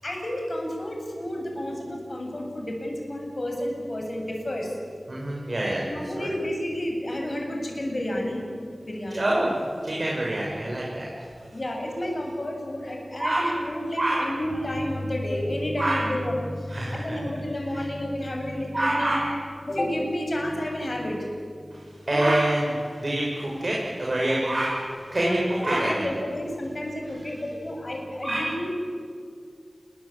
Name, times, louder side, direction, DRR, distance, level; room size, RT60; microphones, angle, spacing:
voice 1, 0.0-4.7 5.8-8.4 8.8-9.3 11.5-19.2 19.6-21.2 22.0-22.3 25.2-25.4 25.7-28.7, left 1 dB, 50° left, 1 dB, 7.9 m, -30 dB
voice 2, 5.1-5.9 6.2-6.3 9.1-11.3 13.2-13.6 14.0-14.6 15.8-16.1 16.7-17.2 17.7-17.9 18.7-19.3 21.7-26.1 27.2-27.3 28.2-28.6, right 1 dB, 55° right, -4 dB, 7.0 m, -26 dB
28.0 x 23.5 x 8.9 m, 2.2 s
wide cardioid pair, 45°, 0 cm